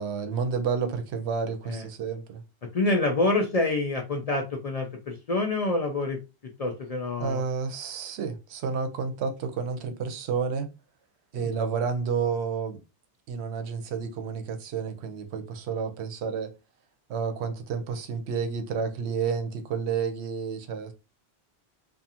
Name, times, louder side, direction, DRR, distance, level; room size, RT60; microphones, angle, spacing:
voice 1, 0.0-2.4 7.2-10.7 11.3-12.8 13.3-16.5 17.1-20.9, right 6 dB, 85° right, 0.9 m, -30 dB
voice 2, 2.7-6.2 6.6-7.4 11.3-11.5, left 2 dB, 50° left, 0.4 m, -27 dB
2.5 x 2.4 x 2.7 m
omnidirectional pair, 1.1 m